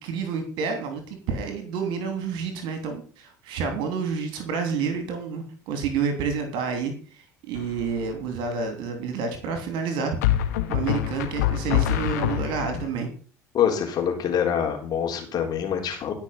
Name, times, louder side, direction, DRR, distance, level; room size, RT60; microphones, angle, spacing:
voice 1, 0.0-10.2 10.7-13.1, right 5 dB, 60° right, 6 dB, 3.1 m, -29 dB
sound 1, 7.5-8.0 10.2-12.9, left 12 dB, 70° left, 1.5 m, -25 dB
voice 2, 13.5-16.1, left 8 dB, 45° left, 3 dB, 3.8 m, -25 dB
18.0 x 6.1 x 5.8 m, 0.40 s
figure-of-eight pair, 60°, 9 cm